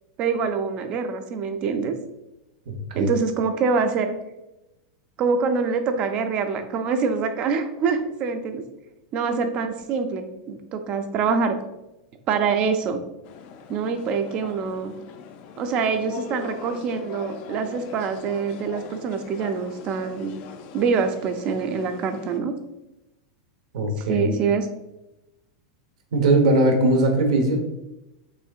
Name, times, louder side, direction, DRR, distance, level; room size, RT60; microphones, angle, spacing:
voice 1, 0.2-2.0 2.9-4.1 5.2-8.6 9.1-11.6 12.3-13.0 13.7-14.9 15.6-20.4 20.7-22.5 24.1-24.7, right 5 dB, 30° right, 7 dB, 0.4 m, -25 dB
voice 2, 2.7-3.1 23.7-24.3 26.1-27.6, right 2 dB, 75° right, 4 dB, 1.0 m, -20 dB
sound 1, 13.2-22.4, left 6 dB, 35° left, 0.4 m, -41 dB
5.6 x 3.5 x 2.4 m, 0.93 s
supercardioid pair, 165°, 4 cm